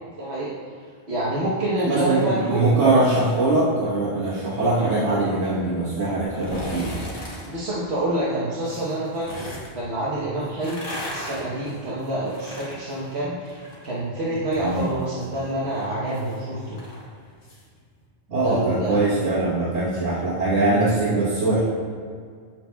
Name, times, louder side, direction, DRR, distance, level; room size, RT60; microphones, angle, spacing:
voice 1, 0.2-0.5 1.1-2.7 4.6-4.8 7.5-16.8 18.4-19.0, right 1 dB, 70° right, -8 dB, 1.3 m, -27 dB
voice 2, 1.9-6.9 14.6-14.9 18.3-21.7, right 2 dB, 85° right, -9 dB, 1.6 m, -22 dB
sound 1, 6.3-7.5 8.6-9.7 10.4-13.9 14.2-17.6 18.0-18.1, left 1 dB, 90° left, 1.7 m, -37 dB
8.6 x 7.3 x 2.2 m, 2.1 s
omnidirectional pair, 1.1 m